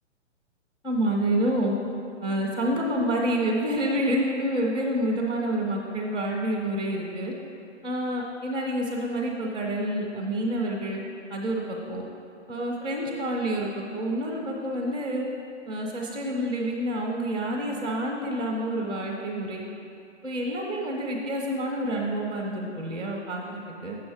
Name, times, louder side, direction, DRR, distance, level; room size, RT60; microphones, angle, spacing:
voice 1, 0.8-1.7 2.2-7.3 7.8-11.0 11.3-12.0 12.5-15.2 15.7-19.6 20.2-24.0, right 1 dB, 5° left, -4 dB, 0.3 m, -28 dB
8.5 x 7.0 x 4.7 m, 2.6 s
hypercardioid pair, 135°, 36 cm